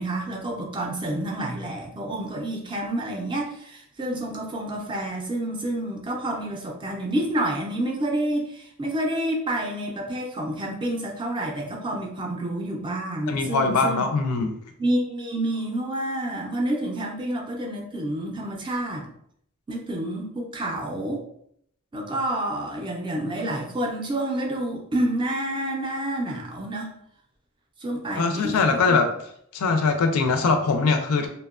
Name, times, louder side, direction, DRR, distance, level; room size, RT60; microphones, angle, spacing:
voice 1, 0.0-14.0 14.8-19.1 19.7-21.2 21.9-26.9 27.8-28.8, right 1 dB, 20° right, 0 dB, 0.4 m, -29 dB
voice 2, 13.3-14.6 28.2-29.1 29.5-31.3, left 4 dB, 85° left, 6 dB, 0.4 m, -22 dB
2.8 x 2.1 x 2.3 m, 0.70 s
head